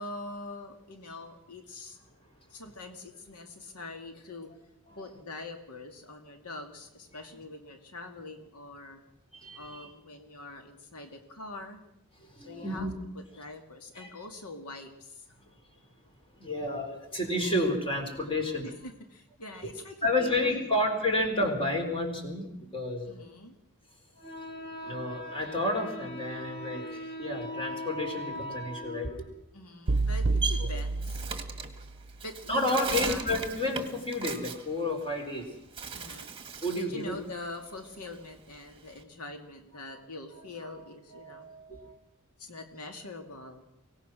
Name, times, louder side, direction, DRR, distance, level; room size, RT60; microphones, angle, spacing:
voice 1, 0.0-2.0 2.5-4.5 4.9-9.0 9.6-11.8 12.4-12.9 13.1-15.3 18.6-20.7 23.1-23.6 29.5-31.6 32.2-33.3 35.9-36.4 36.8-41.5 42.4-43.7, left 2 dB, 90° left, 5 dB, 2.2 m, -44 dB
voice 2, 9.3-9.9 12.2-13.0 13.9-14.1 16.4-18.7 19.6-19.7 20.0-23.2 24.2-29.3 32.5-35.5 36.6-37.2 41.1-42.0, left 1 dB, 25° left, 4 dB, 4.0 m, -31 dB
Bird, 29.9-35.4 35.7-36.9 37.3-39.0, right 5 dB, 25° right, 1.7 m, -38 dB
sound 1, 29.9-32.0, right 3 dB, 55° right, 0.7 m, -29 dB
24.0 x 18.0 x 6.2 m, 0.80 s
head